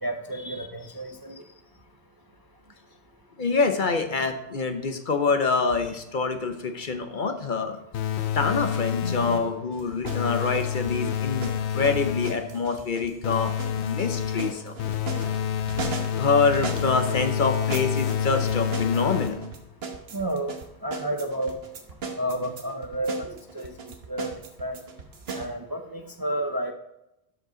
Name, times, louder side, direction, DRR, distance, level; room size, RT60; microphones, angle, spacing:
voice 1, 0.0-1.3 20.1-20.5 20.8-21.5 22.2-23.3 23.5-23.7 24.1-24.3 24.6-24.8 25.3-26.7, right 1 dB, 25° right, 5 dB, 0.6 m, -30 dB
voice 2, 3.4-7.8 8.3-11.5 11.7-14.8 16.2-19.4, left 4 dB, 50° left, 7 dB, 0.9 m, -26 dB
sound 1, 7.9-9.6 10.0-12.5 13.2-19.6, left 9 dB, 85° left, 0.9 m, -28 dB
sound 2, 9.7-17.2 17.7-25.5, right 4 dB, 70° right, 1.3 m, -38 dB
12.5 x 5.3 x 3.8 m, 0.85 s
omnidirectional pair, 1.1 m